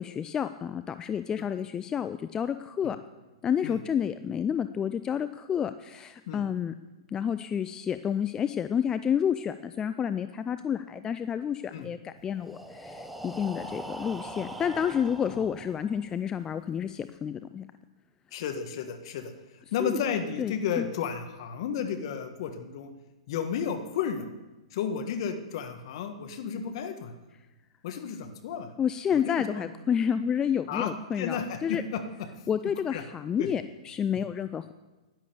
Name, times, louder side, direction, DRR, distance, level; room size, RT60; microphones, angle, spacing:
voice 1, 0.0-3.0 3.4-6.7 7.1-17.7 19.8-19.9 20.4-20.9 28.8-31.8 32.5-34.7, left 8 dB, 20° left, 12 dB, 0.4 m, -30 dB
Breathing, 12.3-16.2, right 1 dB, 5° right, 1.0 m, -42 dB
voice 2, 18.3-19.3 19.7-22.9 23.3-24.2 24.7-27.1 27.8-28.7 29.1-29.7 30.7-32.0 32.9-33.0 33.4-33.5 34.1-34.2, left 7 dB, 55° left, 7 dB, 1.6 m, -33 dB
11.0 x 10.5 x 7.0 m, 1.1 s
hypercardioid pair, 115°, 3 cm